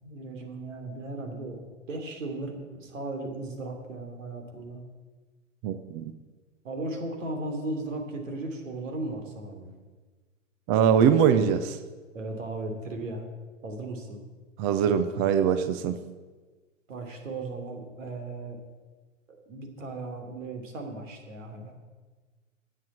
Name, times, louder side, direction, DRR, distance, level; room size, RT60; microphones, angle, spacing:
voice 1, 0.0-4.8 6.6-9.7 12.1-13.3 13.6-14.2 16.9-18.6 19.3-21.7, right 2 dB, 75° right, 4 dB, 3.1 m, -36 dB
voice 2, 5.6-6.0 10.7-11.8 14.6-16.0, right 8 dB, 15° right, 10 dB, 0.3 m, -22 dB
10.5 x 7.7 x 8.5 m, 1.3 s
hypercardioid pair, 120°, 39 cm